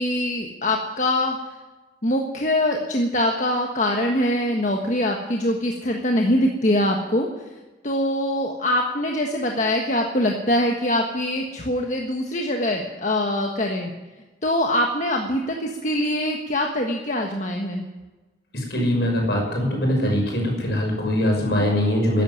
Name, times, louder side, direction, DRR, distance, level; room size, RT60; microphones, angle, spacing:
voice 1, 0.0-1.4 2.0-7.3 7.8-13.9 14.4-17.9, left 1 dB, 45° left, 2 dB, 1.5 m, -23 dB
voice 2, 18.5-22.2, left 1 dB, 65° left, 1 dB, 5.9 m, -22 dB
13.5 x 11.0 x 9.6 m, 1.2 s
head